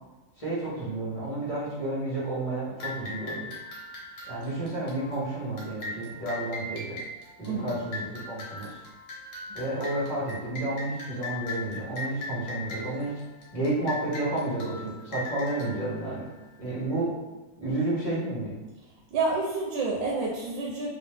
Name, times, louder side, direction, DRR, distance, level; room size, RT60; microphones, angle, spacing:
voice 1, 0.4-3.5 4.3-7.0 7.4-8.8 9.5-13.1 13.5-16.2 16.6-17.1 17.6-18.5, right 2 dB, 20° left, -10 dB, 1.3 m, -31 dB
sound 1, 2.8-16.9, left 2 dB, 60° left, 1.5 m, -40 dB
voice 2, 19.1-20.9, right 3 dB, 90° right, -2 dB, 1.4 m, -28 dB
3.2 x 3.1 x 3.3 m, 1.2 s
omnidirectional pair, 2.0 m